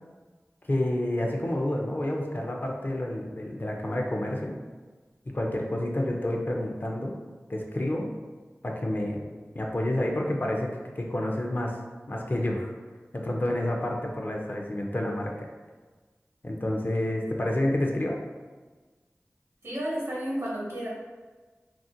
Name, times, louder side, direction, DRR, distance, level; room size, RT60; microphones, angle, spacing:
voice 1, 0.6-4.6 5.3-7.2 7.5-8.1 8.6-9.3 9.5-11.8 12.1-12.7 13.1-15.3 16.4-18.2, left 1 dB, 40° left, 0 dB, 0.4 m, -29 dB
voice 2, 19.6-20.9, equal, 65° right, -5 dB, 0.8 m, -31 dB
2.4 x 2.1 x 2.6 m, 1.4 s
wide cardioid pair, 50°, 5 cm